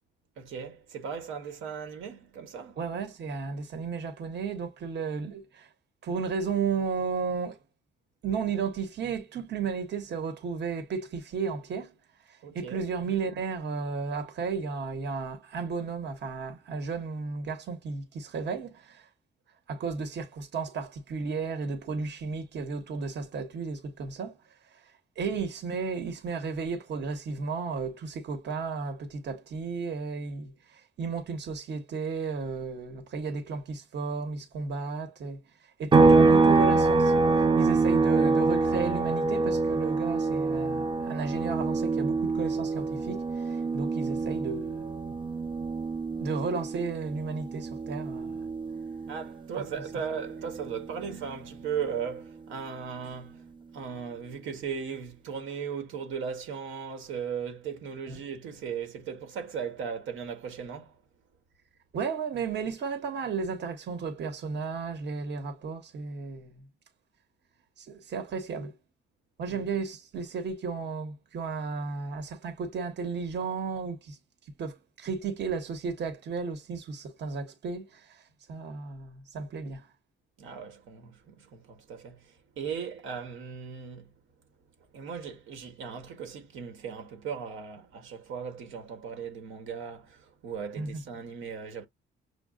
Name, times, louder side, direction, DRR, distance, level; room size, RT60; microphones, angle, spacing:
voice 1, 0.4-2.8 12.4-12.9 49.1-53.4 53.7-60.9 69.5-69.6 80.4-84.1 84.9-91.9, right 7 dB, 80° right, 1.2 m, -37 dB
voice 2, 2.8-5.7 6.0-7.6 8.2-11.9 12.3-19.1 19.7-24.4 24.7-37.1 37.6-45.0 46.2-48.5 58.1-58.2 61.9-66.6 67.8-68.7 69.4-74.2 74.6-78.2 78.5-79.9 90.8-91.0, right 5 dB, 60° right, 1.1 m, -34 dB
sound 1, 35.9-49.5 49.8-52.0, right 3 dB, 25° right, 0.6 m, -25 dB
6.4 x 2.2 x 2.3 m
cardioid pair, 90°, 20 cm